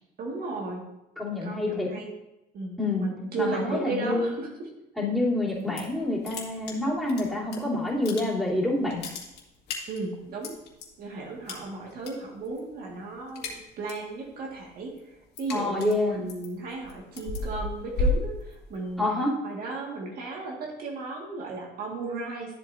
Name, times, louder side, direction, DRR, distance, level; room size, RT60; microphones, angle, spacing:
voice 1, 0.2-0.9 1.4-2.1 2.5-4.7 9.9-10.6 11.0-15.0 15.4-19.1 19.4-22.6, right 3 dB, 60° right, -1 dB, 1.8 m, -35 dB
voice 2, 1.2-1.9 2.8-3.1 3.3-4.3 5.0-9.0 15.5-16.2 19.0-19.3, left 2 dB, ahead, -7 dB, 3.2 m, -27 dB
sound 1, 5.5-6.0 6.2-7.6 7.9-8.6 8.8-10.9 11.5-12.1 12.4-12.7 13.0-14.1 14.5-19.0, left 2 dB, 80° left, 2.1 m, -33 dB
12.5 x 7.6 x 2.6 m, 0.90 s
cardioid pair, 110°, 17 cm